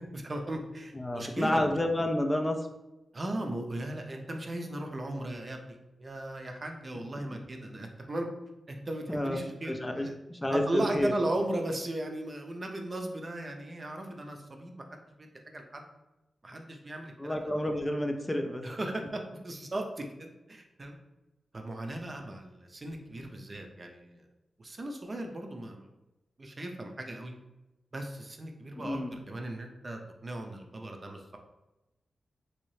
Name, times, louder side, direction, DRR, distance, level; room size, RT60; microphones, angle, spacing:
voice 1, 0.1-1.7 3.1-8.3 8.7-10.1 10.5-15.9 16.4-17.5 18.6-21.0 21.5-24.3 24.6-25.9 26.4-27.3 27.9-31.4, right 1 dB, 35° right, 3 dB, 0.5 m, -37 dB
voice 2, 0.9-2.7 9.1-9.4 9.6-11.1 17.2-18.6 28.8-29.2, left 1 dB, 15° left, 4 dB, 0.4 m, -30 dB
3.1 x 2.7 x 3.1 m, 0.99 s
cardioid pair, 70°, 0 cm